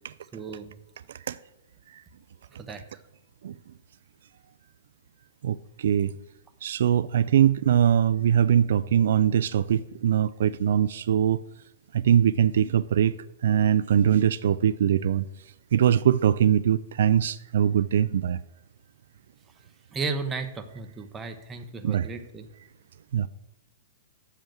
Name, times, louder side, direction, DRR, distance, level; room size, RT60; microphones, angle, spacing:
voice 1, 0.3-0.7 2.6-2.8 19.9-22.5, right 4 dB, 10° right, 0.8 m, -34 dB
voice 2, 5.4-6.1 6.6-11.4 11.9-13.2 13.4-15.2 15.7-18.4 21.8-22.1 23.1-23.3, right 9 dB, 70° right, 0.3 m, -22 dB
7.2 x 6.3 x 7.6 m
hypercardioid pair, 155°, 0 cm